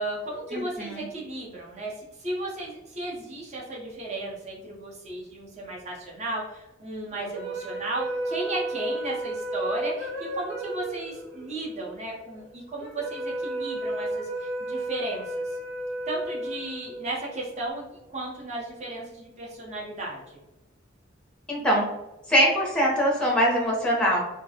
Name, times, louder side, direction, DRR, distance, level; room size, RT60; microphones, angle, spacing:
voice 1, 0.0-1.9 2.2-15.6 16.1-17.8 18.1-20.4, right 2 dB, 35° right, -3 dB, 0.6 m, -34 dB
voice 2, 0.5-1.0 21.5-21.8 22.3-24.2, equal, 5° left, -3 dB, 0.6 m, -22 dB
sound 1, 7.2-17.6, right 1 dB, 85° right, 0.6 m, -33 dB
2.3 x 2.0 x 2.7 m, 0.94 s
head